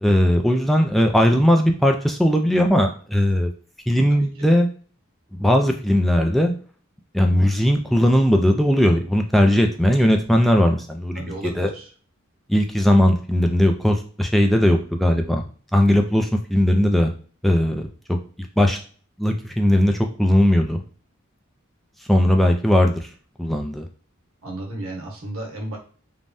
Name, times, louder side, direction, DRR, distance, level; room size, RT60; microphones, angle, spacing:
voice 1, 0.0-3.5 3.9-4.7 5.4-6.5 7.1-11.7 12.5-15.4 15.7-17.1 17.4-18.2 18.6-18.8 19.2-20.8 22.1-23.0 23.4-23.9, equal, ahead, 3 dB, 0.3 m, -18 dB
voice 2, 11.1-11.9 24.4-25.8, right 1 dB, 85° right, 0 dB, 1.0 m, -33 dB
3.3 x 2.2 x 2.6 m, 0.42 s
head